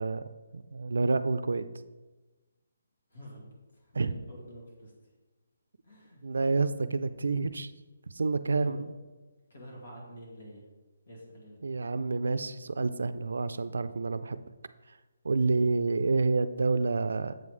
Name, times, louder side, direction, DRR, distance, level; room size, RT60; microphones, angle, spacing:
voice 1, 0.0-1.6 3.9-4.1 6.2-7.7 8.1-8.9 11.6-14.4 15.2-17.3, right 3 dB, 75° right, 12 dB, 0.4 m, -28 dB
voice 2, 3.1-3.5 3.7-4.9 5.8-6.2 8.6-8.8 9.5-10.6 11.1-11.6 15.8-16.1, equal, 65° left, -2 dB, 2.3 m, -48 dB
7.6 x 5.3 x 3.2 m, 1.2 s
hypercardioid pair, 175°, 0 cm